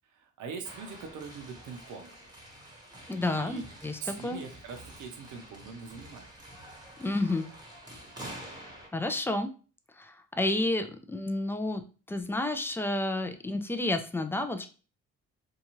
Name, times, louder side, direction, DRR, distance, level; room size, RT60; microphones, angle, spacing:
voice 1, 0.1-2.1 3.2-3.6 4.0-6.3, right 5 dB, 75° right, 4 dB, 0.7 m, -42 dB
sound 1, 0.6-8.9, right 1 dB, 15° right, 0.9 m, -48 dB
voice 2, 3.1-4.4 7.0-7.5 8.9-9.5 10.0-11.8 12.1-14.7, left 2 dB, 10° left, 8 dB, 0.3 m, -30 dB
2.7 x 2.3 x 2.9 m, 0.37 s
cardioid pair, 90°, 30 cm